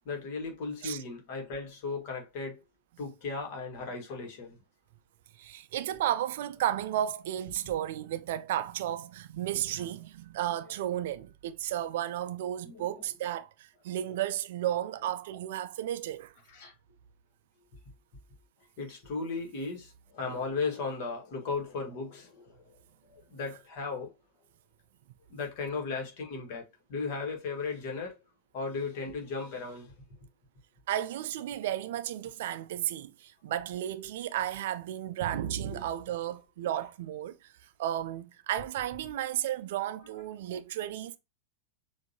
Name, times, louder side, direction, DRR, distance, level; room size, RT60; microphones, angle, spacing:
voice 1, 0.0-2.6 3.0-4.6 9.8-9.9 12.6-13.0 16.5-16.7 18.8-22.8 23.1-24.1 25.3-26.6 26.9-28.2 28.5-29.9 35.7-35.8, left 4 dB, 45° left, 1.6 m, -36 dB
voice 2, 5.4-16.3 30.9-37.5 37.8-41.2, right 12 dB, 55° right, 0.4 m, -33 dB
6.7 x 2.6 x 2.8 m
figure-of-eight pair, 90°, 0 cm